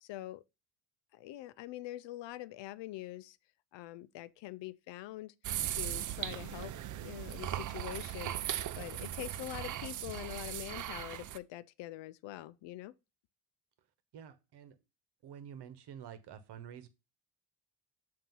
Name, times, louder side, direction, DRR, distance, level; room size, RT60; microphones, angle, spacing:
voice 1, 0.0-0.4 1.1-3.4 3.7-5.3 5.7-6.7 7.0-8.4 8.8-12.9, left 15 dB, 75° left, 0.6 m, -44 dB
sound 1, 5.4-11.4, right 12 dB, 45° right, 0.5 m, -38 dB
voice 2, 14.1-14.7 15.2-16.9, right 8 dB, 65° right, 1.2 m, -49 dB
7.5 x 2.8 x 5.4 m
cardioid pair, 95°, 44 cm